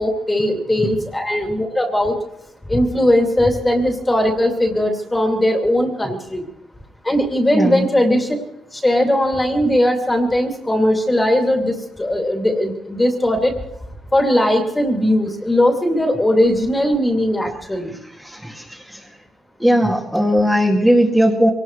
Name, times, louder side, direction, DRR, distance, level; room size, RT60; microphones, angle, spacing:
voice 1, 0.0-2.1 2.7-6.5 7.0-8.4 8.7-13.5 14.1-17.9, left 1 dB, 15° left, 2 dB, 2.7 m, -18 dB
voice 2, 7.5-7.9 17.9-19.1 19.6-21.5, equal, 5° right, -4 dB, 2.2 m, -18 dB
24.0 x 19.0 x 3.2 m, 0.89 s
cardioid pair, 90°, 0 cm